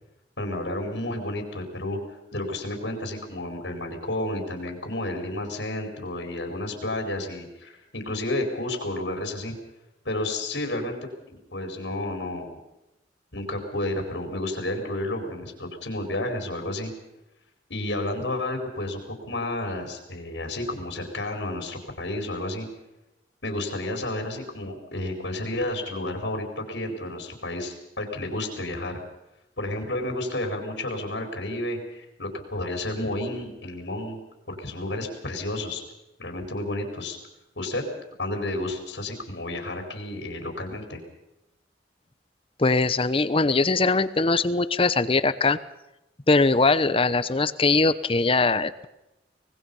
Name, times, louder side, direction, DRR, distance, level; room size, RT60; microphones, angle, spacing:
voice 1, 0.4-9.5 10.0-10.9 11.3-12.5 13.3-16.9 17.7-22.7 23.4-29.0 29.6-34.2 34.5-35.8 36.2-37.2 37.6-37.8 38.2-41.0, left 1 dB, 80° left, 4 dB, 4.5 m, -31 dB
voice 2, 42.6-45.6 46.3-48.9, left 3 dB, 30° left, 15 dB, 0.8 m, -21 dB
25.0 x 20.0 x 5.5 m, 0.92 s
head